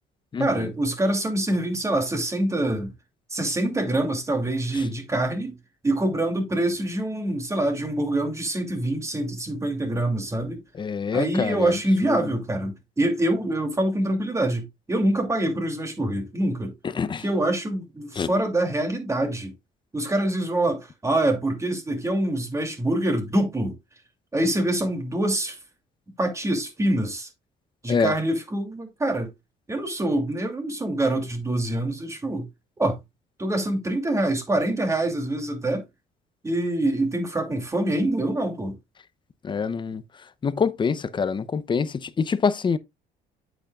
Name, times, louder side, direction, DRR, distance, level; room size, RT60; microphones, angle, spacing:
voice 1, 0.4-2.9 3.3-5.6 5.8-10.6 11.1-16.7 17.2-19.5 19.9-23.8 24.3-25.6 26.2-27.3 27.8-29.3 29.7-32.5 32.8-33.0 33.4-35.8 36.4-38.8, right 1 dB, 15° right, 2.7 m, -25 dB
voice 2, 10.8-12.3 17.0-17.2 18.2-18.3 27.9-28.1 39.4-40.0 40.4-42.8, left 5 dB, 30° left, 0.7 m, -25 dB
8.6 x 8.1 x 2.4 m
cardioid pair, 110°, 17 cm